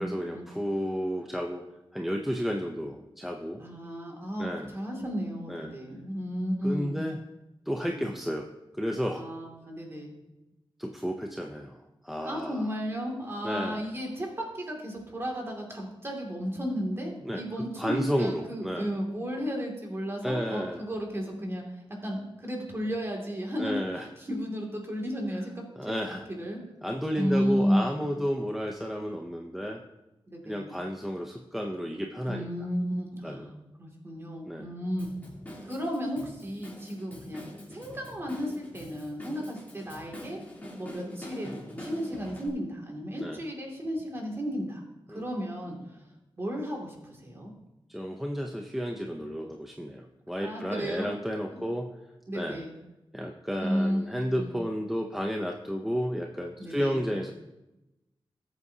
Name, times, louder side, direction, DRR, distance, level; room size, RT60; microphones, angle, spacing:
voice 1, 0.0-1.6 1.9-3.6 4.4-4.7 5.5-5.8 6.6-7.2 7.7-8.5 8.7-9.2 10.8-12.7 13.4-13.8 17.2-18.9 20.2-20.8 23.6-24.1 25.8-26.3 26.8-29.8 30.4-32.5 33.2-33.5 34.5-34.7 43.2-43.4 45.1-45.3 47.9-51.9 52.3-52.6 53.1-57.3, equal, 5° right, 1 dB, 0.6 m, -32 dB
voice 2, 3.6-6.9 7.8-8.0 9.1-10.1 12.2-21.6 22.0-25.9 26.4-26.6 27.2-27.9 30.3-30.7 32.3-35.1 35.6-37.4 37.7-40.4 40.8-44.8 45.1-46.0 46.4-47.5 50.4-51.1 51.5-51.6 52.3-52.7 53.6-54.0 54.4-54.5 56.6-57.0, equal, 25° right, 0 dB, 2.3 m, -33 dB
Drum kit / Drum, 35.0-42.5, left 1 dB, 20° left, 3.1 m, -44 dB
19.0 x 8.1 x 2.8 m, 0.97 s
wide cardioid pair, 165°, 9 cm